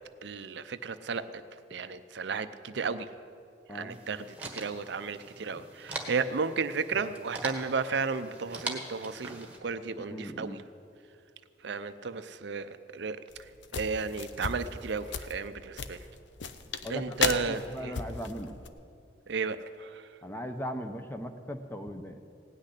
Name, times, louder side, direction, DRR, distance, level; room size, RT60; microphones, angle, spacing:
voice 1, 0.2-1.4 1.7-3.1 3.7-10.6 11.6-16.1 16.9-18.0 19.3-20.1, right 5 dB, 60° right, 11 dB, 0.5 m, -34 dB
sound 1, 3.9-9.6, right 2 dB, 5° right, 1.4 m, -42 dB
voice 2, 10.1-10.6 16.8-18.5 20.2-22.2, equal, 10° left, 6 dB, 0.7 m, -38 dB
sound 2, 13.3-18.7, left 5 dB, 70° left, 0.7 m, -35 dB
17.0 x 6.5 x 9.8 m, 2.5 s
head